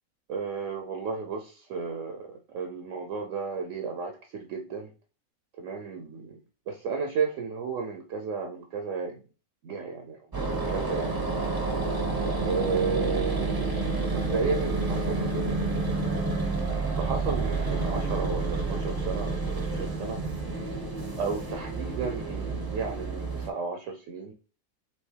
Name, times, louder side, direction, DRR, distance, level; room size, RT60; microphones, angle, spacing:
voice 1, 0.3-4.9 5.6-6.4 6.7-9.2 9.6-11.2 12.4-13.8 14.1-15.7 17.0-20.2 21.2-24.3, right 5 dB, 65° right, 5 dB, 0.9 m, -33 dB
sound 1, 10.3-23.5, right 3 dB, 25° right, 0.5 m, -29 dB
5.3 x 2.9 x 3.2 m, 0.37 s
omnidirectional pair, 1.5 m